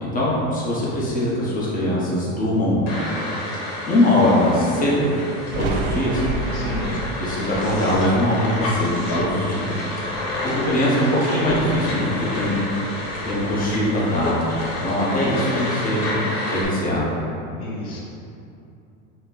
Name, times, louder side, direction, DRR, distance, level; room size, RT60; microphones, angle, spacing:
voice 1, 0.0-2.9 3.9-5.0 5.5-6.2 7.2-9.8 10.5-12.6 13.2-14.4 14.8-16.1 16.5-17.1, left 1 dB, 20° left, -7 dB, 1.1 m, -21 dB
sound 1, 2.9-16.6, left 1 dB, 65° left, 1.4 m, -29 dB
Thunder, 5.5-11.0 11.3-12.8 13.0-14.8, right 3 dB, 60° right, 0.5 m, -33 dB
voice 2, 6.5-7.0 10.4-10.8 17.6-18.0, left 1 dB, 90° left, -4 dB, 1.0 m, -30 dB
4.3 x 2.3 x 4.0 m, 2.7 s
supercardioid pair, 105°, 42 cm